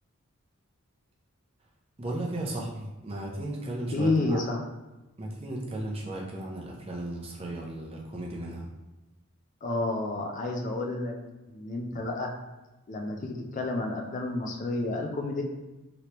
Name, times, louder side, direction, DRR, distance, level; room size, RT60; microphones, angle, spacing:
voice 1, 2.0-4.4 5.2-8.7, right 1 dB, 25° right, -2 dB, 0.5 m, -35 dB
voice 2, 3.9-4.6 9.6-11.1 11.5-12.3 12.9-15.4, left 2 dB, 35° left, 2 dB, 0.4 m, -30 dB
3.2 x 2.9 x 2.9 m, 1.1 s
head